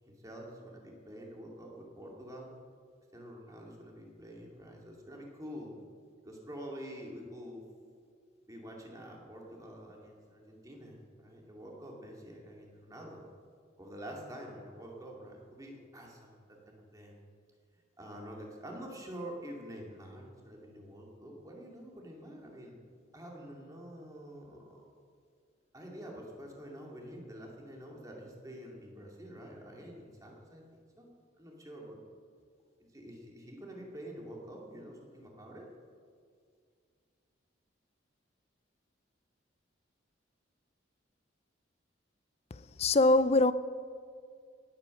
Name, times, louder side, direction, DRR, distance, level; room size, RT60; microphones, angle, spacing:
voice 1, 0.0-2.5 3.1-5.8 6.2-7.6 8.5-13.2 13.8-17.1 18.0-22.8 23.1-24.8 25.7-30.6 31.0-31.1 31.4-32.0 32.8-35.7, equal, 20° right, -1 dB, 2.4 m, -47 dB
voice 2, 42.5-43.5, left 2 dB, 30° left, 15 dB, 0.4 m, -24 dB
18.0 x 8.8 x 6.5 m, 2.1 s
head